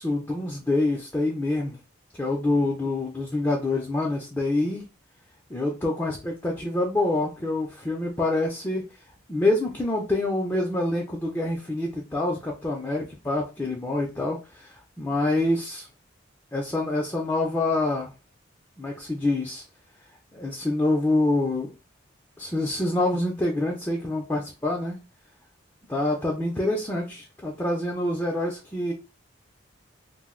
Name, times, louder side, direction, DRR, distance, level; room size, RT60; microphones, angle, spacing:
voice 1, 0.0-1.8 2.2-4.9 5.5-8.9 9.3-15.9 16.5-18.1 18.8-19.6 20.3-21.7 22.4-25.0 25.9-28.9, left 2 dB, 10° left, -2 dB, 0.4 m, -26 dB
2.5 x 2.0 x 3.6 m, 0.29 s
head